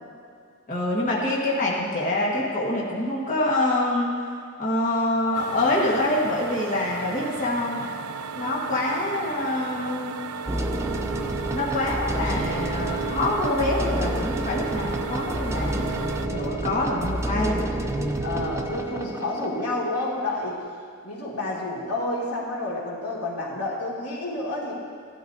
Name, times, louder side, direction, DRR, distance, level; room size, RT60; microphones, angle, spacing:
voice 1, 0.7-4.1 4.6-7.8 8.3-10.1 11.5-15.8 16.3-18.2, left 1 dB, 35° left, -5 dB, 1.5 m, -25 dB
sound 1, 5.3-16.3, right 5 dB, 75° right, 0.5 m, -36 dB
sound 2, 10.5-20.5, right 1 dB, 15° right, 0.5 m, -29 dB
voice 2, 18.2-20.6 21.0-24.7, left 2 dB, 90° left, -4 dB, 2.3 m, -29 dB
15.0 x 12.0 x 2.7 m, 2.3 s
head